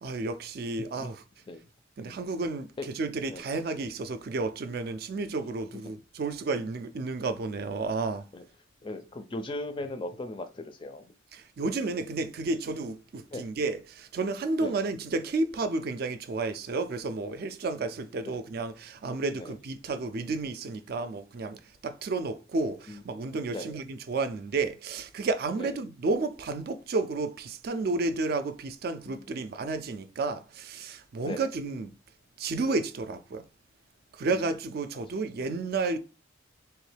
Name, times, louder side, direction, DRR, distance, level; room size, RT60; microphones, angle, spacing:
voice 1, 0.0-1.2 2.0-2.7 2.9-8.2 11.3-31.9 32.4-33.4 34.1-36.0, right 3 dB, 50° right, 0.3 m, -31 dB
voice 2, 8.8-11.1 13.3-13.5 14.6-14.8 17.8-17.9 18.3-18.4 19.4-19.6 22.9-23.0 23.5-23.8 25.6-25.7 29.0-29.3 31.2-31.5 34.3-34.5 35.4-35.5, left 2 dB, 25° left, 0.4 m, -38 dB
3.5 x 3.1 x 3.2 m
head